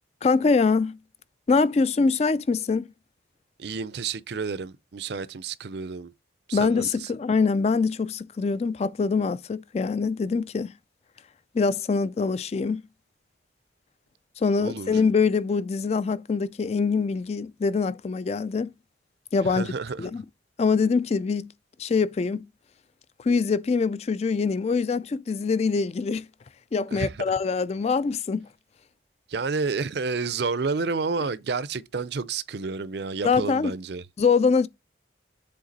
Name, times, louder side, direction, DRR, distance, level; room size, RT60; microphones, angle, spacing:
voice 1, 0.2-1.0 1.5-2.9 6.5-10.7 11.5-12.8 14.4-18.7 19.3-19.7 20.0-20.2 20.6-21.5 21.8-22.4 23.2-26.3 26.7-28.5 33.2-33.7 34.2-34.7, left 4 dB, 35° left, 0.3 m, -24 dB
voice 2, 3.6-6.1 6.5-7.1 14.6-15.0 19.4-20.1 26.9-27.3 29.3-34.0, right 4 dB, 60° right, 0.5 m, -30 dB
7.6 x 3.6 x 4.0 m
head